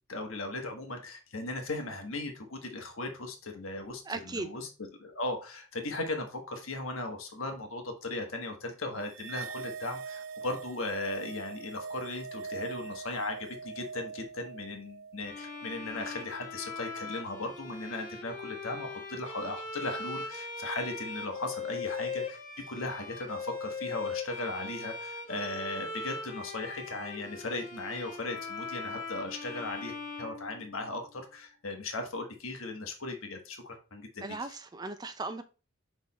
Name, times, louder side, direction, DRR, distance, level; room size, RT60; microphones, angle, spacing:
voice 1, 0.1-4.7 5.0-22.4 22.7-34.4, left 2 dB, 85° left, 1.4 m, -37 dB
voice 2, 4.1-4.5 34.2-35.4, right 3 dB, 20° right, 0.5 m, -37 dB
sound 1, 9.1-15.7, right 5 dB, 75° right, 0.4 m, -42 dB
Bowed string instrument, 15.2-31.1, left 3 dB, 40° left, 1.2 m, -40 dB
6.5 x 3.6 x 4.2 m
head